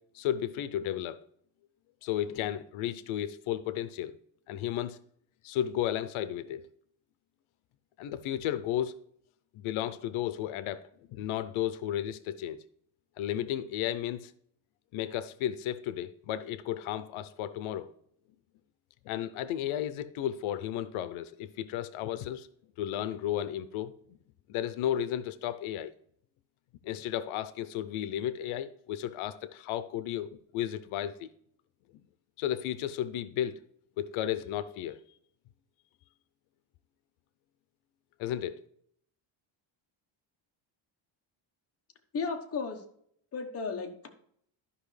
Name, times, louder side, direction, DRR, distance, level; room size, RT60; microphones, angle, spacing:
voice 1, 0.1-1.2 2.0-4.1 4.5-5.0 5.4-6.7 8.0-9.0 9.5-10.8 11.1-12.6 13.2-14.3 14.9-17.9 19.1-22.5 22.8-23.9 24.5-25.9 26.8-31.3 32.4-33.6 34.0-35.0 38.2-38.6, left 11 dB, 85° left, 0.6 m, -33 dB
voice 2, 42.1-42.8 43.3-44.1, left 5 dB, 30° left, 1.0 m, -34 dB
12.5 x 5.5 x 3.2 m
cardioid pair, 170°, 47 cm